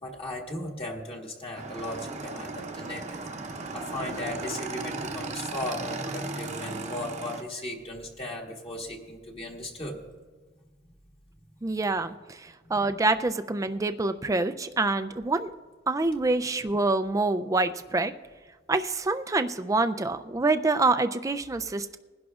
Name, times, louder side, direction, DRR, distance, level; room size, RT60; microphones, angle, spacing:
voice 1, 0.0-3.2 3.7-10.0 12.6-12.8, left 1 dB, 30° left, -1 dB, 1.4 m, -37 dB
Motorcycle / Engine, 1.6-7.4, right 3 dB, 35° right, 0.8 m, -36 dB
voice 2, 11.6-15.5 15.9-18.1 18.7-22.0, right 3 dB, 15° right, 10 dB, 0.4 m, -26 dB
21.5 x 11.0 x 2.4 m, 1.4 s
head